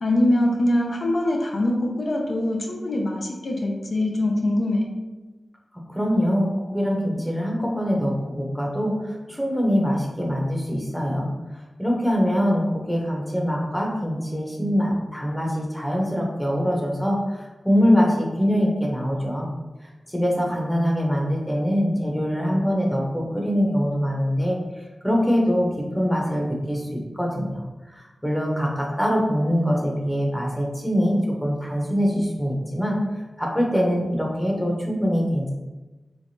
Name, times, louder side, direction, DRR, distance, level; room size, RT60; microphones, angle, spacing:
voice 1, 0.0-4.9, left 1 dB, 65° left, 0 dB, 0.5 m, -23 dB
voice 2, 5.9-11.3 11.8-19.5 20.1-24.6 25.0-33.0 33.4-35.5, equal, 5° left, -1 dB, 0.8 m, -23 dB
3.3 x 3.2 x 2.7 m, 1.1 s
wide cardioid pair, 60°, 0 cm